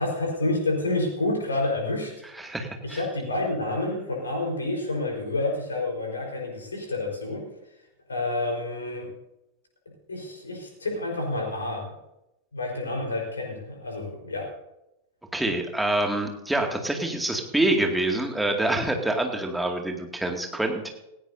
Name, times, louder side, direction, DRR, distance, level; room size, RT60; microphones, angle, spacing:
voice 1, 0.0-2.1 2.8-7.4 8.1-9.1 10.1-11.9 12.5-14.5, left 2 dB, 75° left, 1 dB, 4.3 m, -29 dB
voice 2, 2.4-3.0 15.3-20.9, right 1 dB, 5° right, 2 dB, 2.3 m, -26 dB
18.0 x 16.5 x 2.7 m, 0.89 s
figure-of-eight pair, 90°, 0 cm